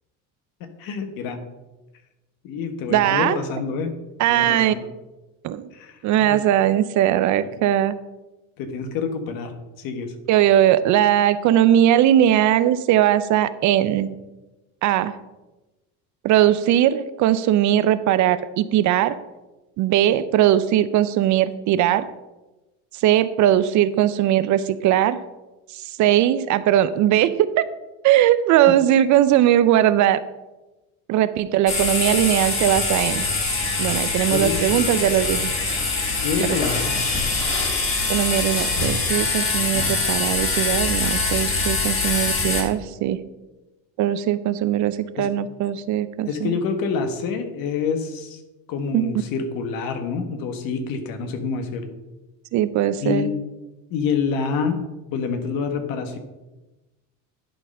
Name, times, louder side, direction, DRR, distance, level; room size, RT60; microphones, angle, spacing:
voice 1, 0.8-1.4 2.4-3.9 4.3-4.9 5.7-6.4 8.6-10.1 34.2-34.8 36.2-36.9 45.2-45.3 46.3-48.4 48.7-51.9 53.0-53.4 53.9-54.8 55.1-56.2, left 5 dB, 65° left, 7 dB, 1.4 m, -27 dB
voice 2, 2.9-3.4 4.2-4.7 5.4-5.7 6.0-7.9 10.3-14.2 14.8-15.2 16.2-19.2 19.8-22.1 23.0-25.2 25.7-27.6 28.0-30.2 31.1-33.3 33.8-35.5 36.4-36.6 38.1-43.2 44.0-46.5 48.9-49.1 52.5-53.3, right 12 dB, 50° right, 14 dB, 0.5 m, -19 dB
sound 1, 31.7-42.6, left 3 dB, 35° left, 2.6 m, -23 dB
11.0 x 4.0 x 5.5 m, 1.1 s
supercardioid pair, 110°, 37 cm